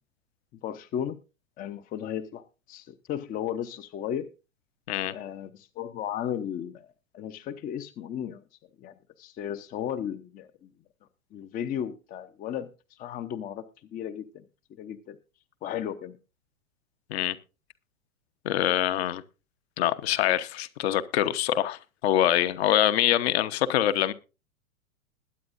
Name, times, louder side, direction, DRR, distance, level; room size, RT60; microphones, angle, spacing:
voice 1, 0.6-1.2 1.6-4.3 5.1-8.4 8.8-10.7 11.3-13.6 13.9-14.4 14.8-15.2 15.6-16.2, left 9 dB, 20° left, 0.7 m, -35 dB
voice 2, 18.4-19.2 19.8-24.1, left 12 dB, 50° left, 1.1 m, -25 dB
21.0 x 9.4 x 2.6 m
figure-of-eight pair, 100°, 41 cm